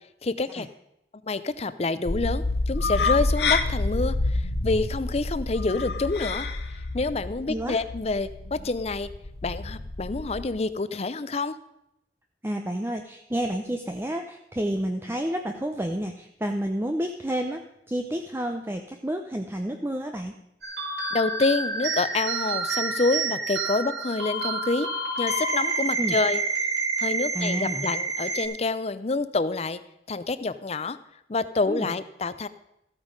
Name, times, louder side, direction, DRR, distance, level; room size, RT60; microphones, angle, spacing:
voice 1, 0.2-0.7 1.2-6.5 6.9-9.1 9.4-11.6 21.1-24.9 25.2-26.4 27.0-29.8 30.1-31.0 31.3-32.5, left 3 dB, 35° left, 14 dB, 0.5 m, -27 dB
sound 1, 2.0-10.5, left 3 dB, 65° left, 1.0 m, -28 dB
voice 2, 12.4-20.4 26.0-26.2 27.3-27.9 31.7-31.9, right 1 dB, 15° right, 4 dB, 0.6 m, -30 dB
sound 2, 20.6-28.4, right 3 dB, 80° right, 4.1 m, -28 dB
14.5 x 8.9 x 5.2 m, 0.82 s
head